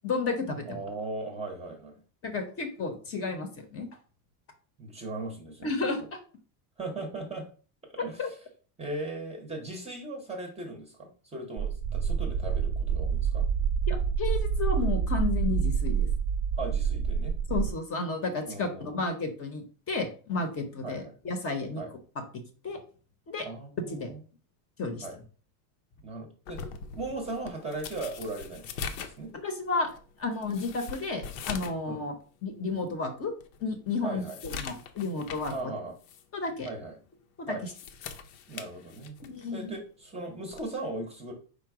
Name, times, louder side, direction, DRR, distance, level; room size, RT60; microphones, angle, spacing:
voice 1, 0.0-0.8 2.2-3.9 5.6-6.2 8.2-8.3 13.9-16.1 17.5-21.8 22.6-22.8 23.3-23.5 23.9-24.1 24.8-25.0 29.4-29.9 30.2-32.1 32.4-33.3 33.6-35.7 36.3-36.7 37.4-37.7 39.2-39.7, left 3 dB, 30° left, 6 dB, 0.8 m, -32 dB
voice 2, 0.7-2.0 4.8-6.1 6.8-7.5 7.9-8.4 8.8-13.4 16.6-17.3 18.5-19.0 20.8-21.1 21.8-21.9 23.4-24.2 25.0-25.2 26.0-26.6 26.9-28.6 29.0-29.3 31.9-32.0 34.0-34.4 35.5-35.9 36.6-37.0 37.5-37.6 38.5-39.2 39.5-41.3, right 2 dB, 15° right, 2 dB, 0.7 m, -38 dB
sound 1, 11.6-17.7, right 7 dB, 45° right, 0.5 m, -27 dB
sound 2, 26.5-31.9 32.2-32.3 32.9-33.0 33.4-35.6 36.0-36.2 37.5-39.4 40.5-40.7, left 6 dB, 80° left, 0.8 m, -41 dB
4.9 x 2.2 x 4.6 m, 0.39 s
cardioid pair, 150°, 46 cm